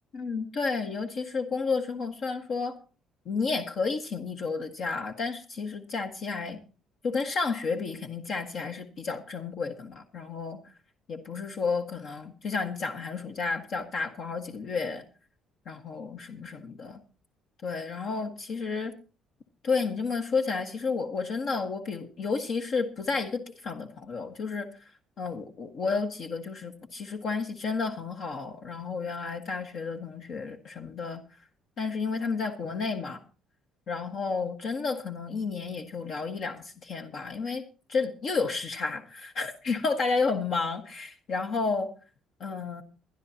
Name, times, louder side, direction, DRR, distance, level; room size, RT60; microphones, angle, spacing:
voice 1, 0.1-2.8 3.2-6.6 7.0-10.6 11.1-15.0 15.7-17.0 17.6-18.9 19.6-24.7 25.2-31.2 31.8-33.2 33.9-37.6 37.9-41.9 42.4-42.8, left 4 dB, 60° left, 4 dB, 1.5 m, -31 dB
21.5 x 11.5 x 2.9 m, 0.35 s
cardioid pair, 85°, 0 cm